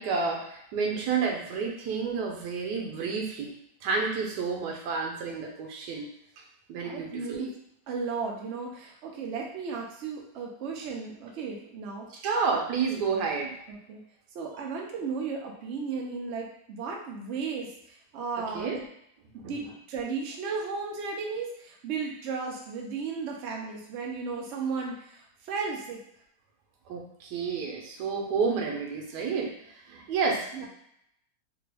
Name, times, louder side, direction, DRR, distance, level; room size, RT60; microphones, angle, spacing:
voice 1, 0.0-3.5 3.8-6.0 6.7-7.5 12.2-13.6 18.4-18.8 26.9-30.7, right 5 dB, 90° right, 0 dB, 1.3 m, -30 dB
voice 2, 6.8-7.5 7.9-12.1 13.7-14.0 14.3-18.9 19.4-26.0 30.5-30.7, right 5 dB, 60° right, 0 dB, 0.7 m, -35 dB
3.3 x 2.2 x 3.3 m, 0.73 s
omnidirectional pair, 1.7 m